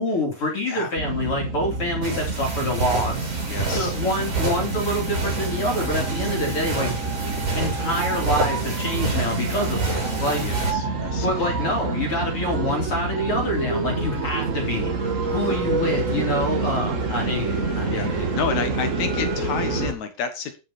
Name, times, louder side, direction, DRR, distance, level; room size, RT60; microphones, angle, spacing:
voice 1, 0.0-3.3 3.7-6.9 7.5-10.5 11.1-18.3, left 1 dB, 40° left, 0 dB, 3.6 m, -26 dB
sound 1, 1.0-19.9, right 3 dB, 40° right, 1.1 m, -27 dB
sound 2, 2.0-10.7, right 3 dB, 85° right, 6.6 m, -29 dB
voice 2, 3.5-3.9 10.3-11.3 15.5-15.6 17.1-17.2 17.9-20.6, left 6 dB, 65° left, 8 dB, 2.4 m, -30 dB
13.0 x 6.0 x 4.3 m, 0.30 s
omnidirectional pair, 3.8 m